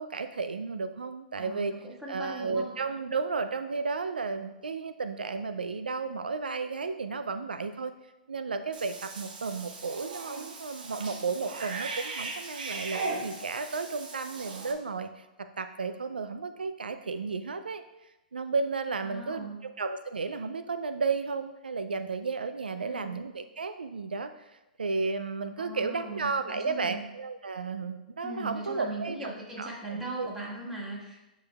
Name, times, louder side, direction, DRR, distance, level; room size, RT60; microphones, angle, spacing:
voice 1, 0.0-1.7 2.1-7.9 8.3-17.8 18.3-24.3 24.8-29.3 29.6-30.3, right 4 dB, 85° right, 10 dB, 0.3 m, -33 dB
voice 2, 1.4-2.7 19.0-19.6 22.8-23.2 25.6-27.0 28.2-31.2, right 2 dB, 5° right, -5 dB, 1.8 m, -39 dB
Cat / Bathtub (filling or washing), 8.7-14.7, right 3 dB, 70° right, 0.9 m, -38 dB
8.7 x 5.3 x 2.3 m, 0.99 s
hypercardioid pair, 115°, 5 cm